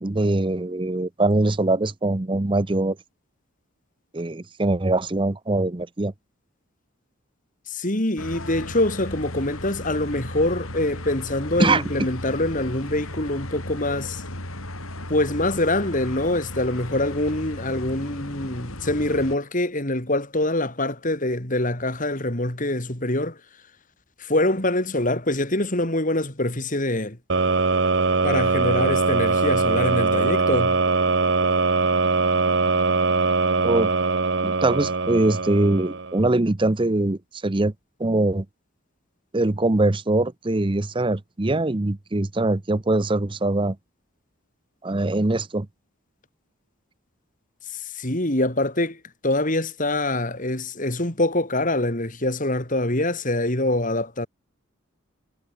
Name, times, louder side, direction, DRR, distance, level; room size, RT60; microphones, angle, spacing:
voice 1, 0.0-3.0 4.1-6.1 11.6-11.8 33.6-33.9 34.4-37.7 38.0-38.5 39.3-43.8 44.8-45.7, right 2 dB, 25° right, 0.7 m, -22 dB
voice 2, 7.7-14.2 15.1-23.4 24.2-27.2 28.2-30.8 47.7-54.3, left 1 dB, 40° left, 3.8 m, -24 dB
sound 1, 8.2-19.4, left 1 dB, 85° left, 7.3 m, -35 dB
sound 2, 27.3-36.2, right 3 dB, 55° right, 1.3 m, -21 dB
head